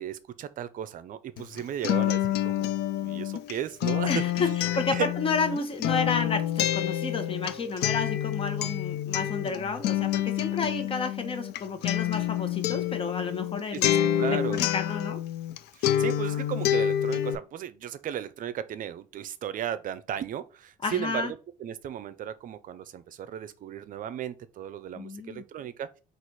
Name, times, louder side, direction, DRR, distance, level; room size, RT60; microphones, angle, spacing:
voice 1, 0.0-2.7 3.0-4.1 4.4-4.5 4.9-5.1 13.7-14.6 15.7-26.0, right 10 dB, 50° right, 0.5 m, -35 dB
Acoustic guitar, 1.4-15.6 15.8-17.3, left 11 dB, 80° left, 0.5 m, -28 dB
voice 2, 4.1-13.9 14.2-15.2 20.8-21.3 24.9-25.4, left 4 dB, 35° left, 1.0 m, -31 dB
4.1 x 2.5 x 4.6 m
cardioid pair, 110°, 17 cm